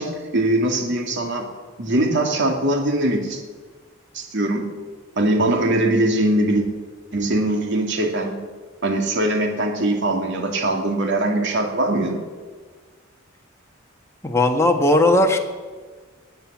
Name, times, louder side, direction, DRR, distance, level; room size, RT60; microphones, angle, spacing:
voice 1, 0.0-1.5 1.8-3.4 4.1-4.7 5.2-6.6 7.1-8.4 8.8-12.2, right 1 dB, 60° right, 3 dB, 2.4 m, -21 dB
voice 2, 14.2-15.4, left 1 dB, 15° left, 3 dB, 1.6 m, -17 dB
20.0 x 9.4 x 7.4 m, 1.5 s
head